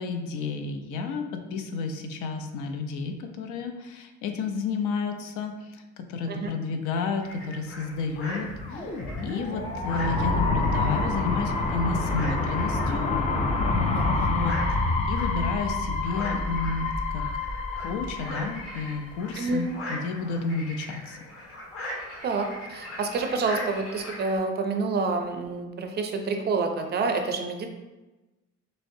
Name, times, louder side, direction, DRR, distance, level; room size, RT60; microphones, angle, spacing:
voice 1, 0.0-8.9 9.2-13.2 13.5-14.6 15.1-17.3 17.8-21.2, left 4 dB, 80° left, 5 dB, 0.6 m, -31 dB
sound 1, 7.2-24.4, left 1 dB, 50° left, 1.4 m, -40 dB
sound 2, 8.3-19.2, left 3 dB, 25° left, 0.4 m, -27 dB
voice 2, 19.4-19.7 22.2-27.7, right 4 dB, 35° right, 5 dB, 0.4 m, -28 dB
6.1 x 2.1 x 2.6 m, 1.1 s
cardioid pair, 140°, 30 cm